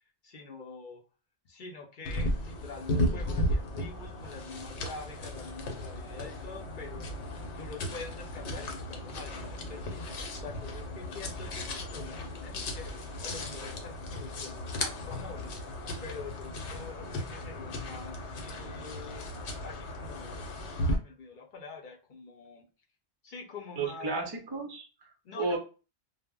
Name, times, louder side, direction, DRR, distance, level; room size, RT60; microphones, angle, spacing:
voice 1, 0.2-1.0 1.4-7.2 7.6-12.9 13.2-15.6 16.0-19.3 19.6-20.6 20.9-22.7 23.2-24.3 25.2-25.6, left 4 dB, 55° left, 0 dB, 0.6 m, -46 dB
sound 1, 2.0-21.0, left 1 dB, 80° left, 0.9 m, -35 dB
voice 2, 23.8-25.1 25.4-25.6, right 3 dB, 40° right, 2 dB, 0.3 m, -33 dB
2.0 x 2.0 x 3.5 m, 0.34 s
omnidirectional pair, 1.1 m